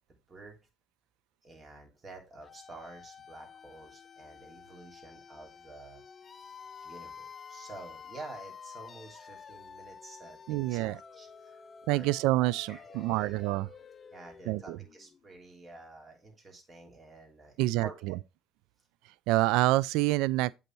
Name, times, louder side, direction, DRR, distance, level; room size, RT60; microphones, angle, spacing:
voice 1, 0.1-0.6 1.4-6.0 6.8-12.1 12.7-13.4 14.1-18.2, right 2 dB, 30° right, 3.0 m, -50 dB
sound 1, 2.4-15.2, left 6 dB, 35° left, 0.5 m, -50 dB
voice 2, 10.5-11.0 11.9-13.7 14.5-14.8 17.6-18.2 19.3-20.6, right 17 dB, 80° right, 0.3 m, -27 dB
8.0 x 4.2 x 4.5 m
supercardioid pair, 85°, 0 cm